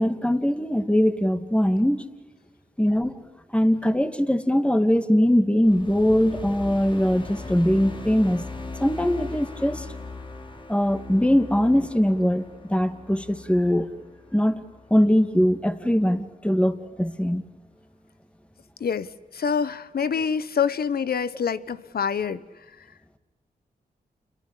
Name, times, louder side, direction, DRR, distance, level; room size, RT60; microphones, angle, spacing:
voice 1, 0.0-2.0 2.8-3.2 3.5-8.4 8.8-9.9 10.7-13.9 14.3-14.6 14.9-17.4, equal, 5° left, 8 dB, 2.6 m, -21 dB
sound 1, 5.6-16.1, left 3 dB, 30° left, 3.3 m, -39 dB
voice 2, 18.8-22.4, left 6 dB, 65° left, 15 dB, 1.2 m, -26 dB
29.0 x 22.5 x 8.4 m, 1.2 s
cardioid pair, 45°, 17 cm